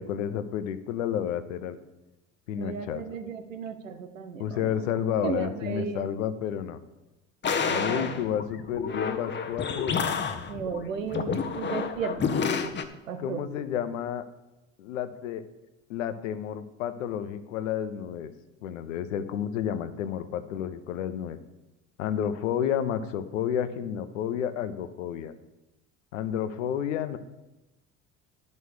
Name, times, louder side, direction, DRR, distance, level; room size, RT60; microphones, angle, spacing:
voice 1, 0.0-1.8 2.5-3.0 4.4-6.8 7.7-10.1 13.2-14.2 14.8-15.4 15.9-18.3 18.6-21.4 22.0-25.3 26.1-27.2, left 9 dB, 75° left, 11 dB, 0.9 m, -31 dB
voice 2, 2.5-4.8 5.2-6.1 7.6-8.1 10.5-12.7 13.0-13.5, right 6 dB, 85° right, 8 dB, 1.0 m, -35 dB
sound 1, 7.4-12.8, left 6 dB, 30° left, 1.1 m, -29 dB
11.0 x 5.4 x 6.5 m, 0.99 s
hypercardioid pair, 65°, 38 cm